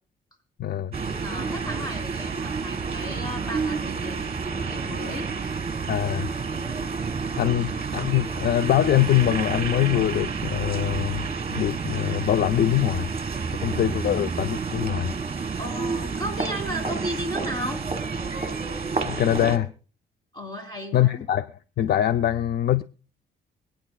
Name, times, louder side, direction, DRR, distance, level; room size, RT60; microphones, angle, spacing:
voice 1, 0.6-0.9 5.9-6.3 7.4-13.1 13.6-15.1 19.1-19.7 20.9-22.8, left 12 dB, 50° left, 0.5 m, -23 dB
sound 1, 0.9-19.6, right 5 dB, 30° right, 1.5 m, -30 dB
voice 2, 1.2-4.2 4.5-5.6 15.6-17.8 20.3-21.2, equal, 20° left, 3.3 m, -34 dB
26.0 x 9.2 x 2.3 m
cardioid pair, 90°, 20 cm